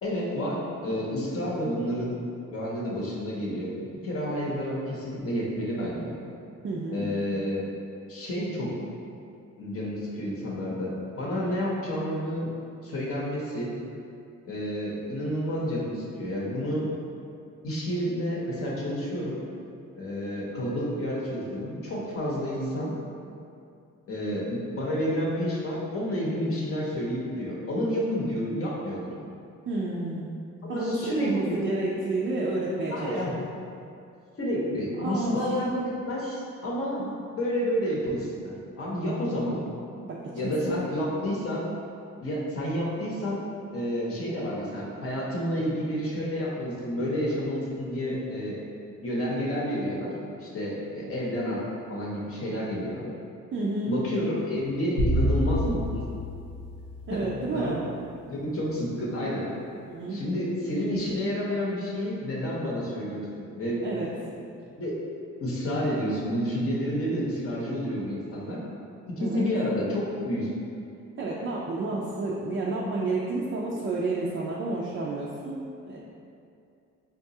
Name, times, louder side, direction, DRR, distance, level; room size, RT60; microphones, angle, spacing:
voice 1, 0.0-2.2 2.5-3.7 4.0-6.2 6.9-7.6 8.1-8.7 9.6-12.5 12.8-13.7 14.5-16.9 17.6-19.4 20.0-23.0 24.1-29.1 30.6-31.6 32.9-33.3 34.4-37.0 37.3-39.6 40.3-41.6 42.2-43.4 43.7-48.6 49.0-50.1 50.4-51.6 51.9-53.0 53.9-56.0 57.1-57.3 57.5-57.8 58.3-59.4 60.1-64.1 64.7-65.0 65.4-68.6 69.1-70.5, equal, 50° left, -5 dB, 0.8 m, -30 dB
voice 2, 6.6-7.1 29.7-30.3 30.7-33.4 35.0-35.5 37.0-37.1 40.0-40.5 53.5-54.0 57.1-57.8 59.8-60.2 63.8-64.1 69.2-69.4 71.2-76.0, right 2 dB, 40° right, -4 dB, 0.4 m, -30 dB
sound 1, 55.0-57.5, equal, 90° left, 0.7 m, -28 dB
3.9 x 2.3 x 2.7 m, 2.5 s
cardioid pair, 90°, 30 cm